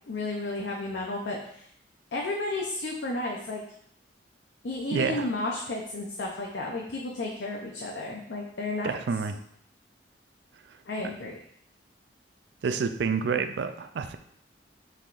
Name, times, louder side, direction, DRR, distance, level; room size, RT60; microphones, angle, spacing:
voice 1, 0.1-1.7 2.1-3.6 4.6-9.0 10.9-11.3, left 2 dB, 70° left, -1 dB, 0.6 m, -32 dB
voice 2, 4.9-5.3 8.8-9.4 12.6-14.2, right 5 dB, 70° right, 9 dB, 0.4 m, -28 dB
5.7 x 3.4 x 2.5 m, 0.68 s
head